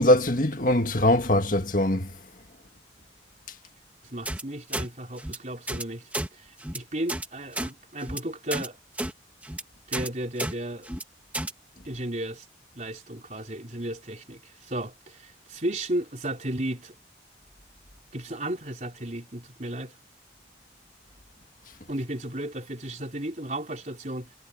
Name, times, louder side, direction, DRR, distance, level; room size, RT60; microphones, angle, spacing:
voice 1, 0.0-2.1, left 1 dB, 45° left, 2.0 m, -22 dB
voice 2, 4.0-6.1 6.4-8.8 9.9-10.9 11.9-12.4 12.7-16.9 18.1-19.9 21.9-24.3, right 1 dB, 40° right, 4.0 m, -34 dB
sound 1, 4.3-4.4 4.7-4.9 5.2-5.4 5.7-5.8 6.1-6.3 6.6-6.8 7.1-7.3 7.5-7.7 8.0-8.2 8.5-8.7 9.0-9.1 9.4-9.6 9.9-10.1 10.4-10.5 10.8-11.0 11.3-11.5, right 1 dB, 10° right, 1.4 m, -31 dB
head